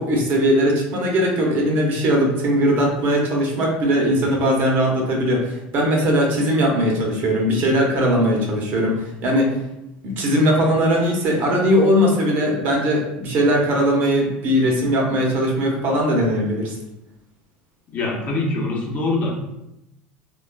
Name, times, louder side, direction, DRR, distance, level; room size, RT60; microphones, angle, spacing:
voice 1, 0.0-9.6 10.0-16.7, equal, 50° right, 0 dB, 0.8 m, -19 dB
voice 2, 17.9-19.5, left 2 dB, 45° left, -2 dB, 0.8 m, -24 dB
3.1 x 2.3 x 2.2 m, 0.88 s
hypercardioid pair, 85°, 4 cm